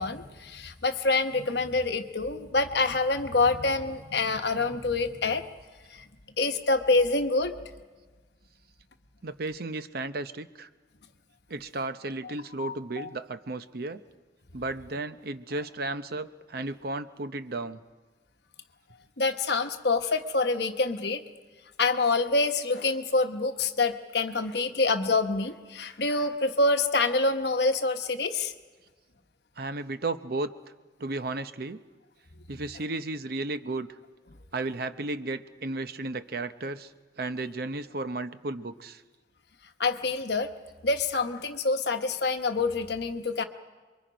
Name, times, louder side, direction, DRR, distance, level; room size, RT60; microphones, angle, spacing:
voice 1, 0.0-5.4 5.9-6.1 6.4-7.5 12.6-13.1 19.2-21.2 21.8-28.5 39.8-40.5 40.8-43.4, left 3 dB, 60° left, 7 dB, 1.1 m, -26 dB
voice 2, 9.2-10.7 11.5-14.0 14.5-17.8 29.6-30.5 31.0-31.8 32.5-33.9 34.5-36.9 37.2-39.0, right 2 dB, 55° right, 11 dB, 0.7 m, -34 dB
27.5 x 23.0 x 5.1 m, 1.3 s
head